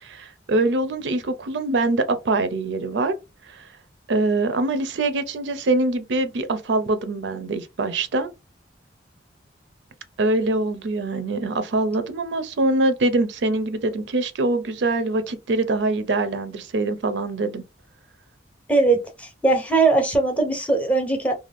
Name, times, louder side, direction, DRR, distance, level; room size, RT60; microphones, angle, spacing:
voice 1, 0.0-3.1 3.4-3.7 4.1-8.3 10.2-17.6, right 2 dB, 75° right, 0.5 m, -24 dB
voice 2, 18.7-21.3, right 3 dB, 5° left, 0.7 m, -20 dB
2.5 x 2.2 x 3.3 m
head